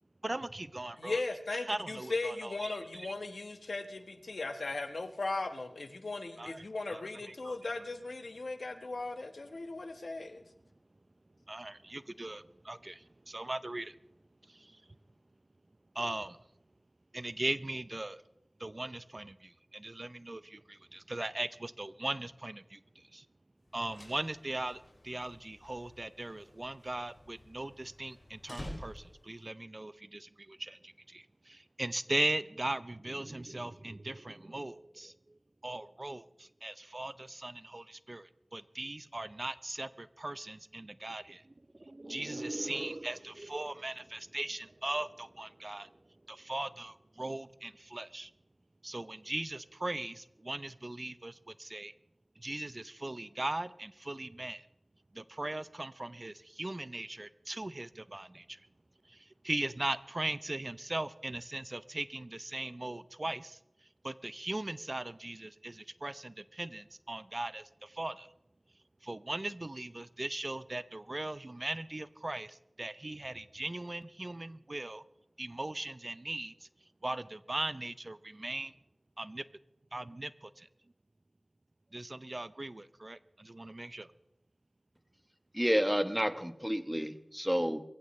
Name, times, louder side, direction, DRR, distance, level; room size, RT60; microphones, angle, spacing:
voice 1, 0.2-1.2 1.7-3.1 6.4-7.5 11.5-13.9 14.5-14.8 15.9-16.4 17.1-18.2 18.6-23.2 23.7-35.1 35.6-41.4 41.8-45.9 46.3-48.3 48.8-51.9 52.4-54.7 55.1-58.6 59.1-63.6 64.0-68.3 69.0-75.0 75.4-76.7 77.0-78.7 79.2-79.4 79.9-80.7 81.9-84.1, right 2 dB, 40° right, 0.6 m, -39 dB
voice 2, 1.0-10.4, left 3 dB, 85° left, 1.2 m, -38 dB
sound 1, 23.7-29.4, left 1 dB, 45° left, 6.1 m, -50 dB
voice 3, 85.5-87.8, equal, 5° right, 1.1 m, -30 dB
23.0 x 15.5 x 3.2 m
wide cardioid pair, 50°, 0 cm